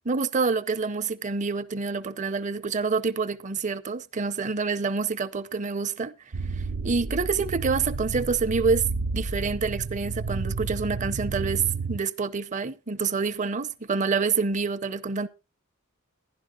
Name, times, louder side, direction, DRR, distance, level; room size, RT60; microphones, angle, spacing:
voice 1, 0.0-6.1 6.5-15.3, right 4 dB, 40° right, 0.7 m, -27 dB
sound 1, 6.3-12.0, right 4 dB, 90° right, 0.6 m, -31 dB
12.0 x 11.0 x 3.7 m
head